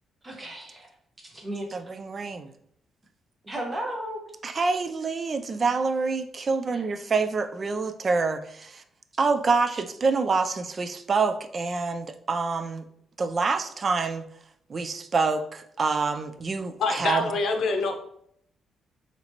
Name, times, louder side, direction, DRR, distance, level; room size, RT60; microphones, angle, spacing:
voice 1, 0.2-0.9 1.2-1.9 3.4-4.2 6.7-6.8, right 1 dB, 20° right, 0 dB, 1.1 m, -34 dB
voice 2, 1.7-2.5 4.4-8.8 9.2-12.8 13.2-14.2 14.7-17.3, right 4 dB, 35° right, 9 dB, 0.3 m, -26 dB
voice 3, 16.8-18.0, left 3 dB, 65° left, 4 dB, 0.6 m, -26 dB
4.1 x 2.9 x 2.8 m, 0.70 s
cardioid pair, 105°, 0 cm